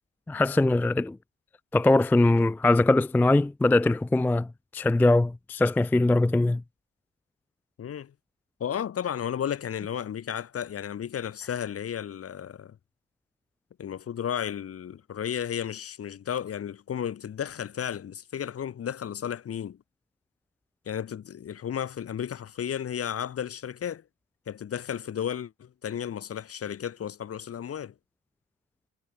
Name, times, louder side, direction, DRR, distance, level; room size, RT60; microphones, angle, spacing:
voice 1, 0.3-1.2 1.7-4.5 4.7-6.6, left 2 dB, 5° left, 0.3 m, -22 dB
voice 2, 7.8-8.1 8.6-12.8 13.8-19.8 20.8-24.0 24.5-27.9, left 9 dB, 50° left, 1.5 m, -33 dB
cardioid pair, 90°, 30 cm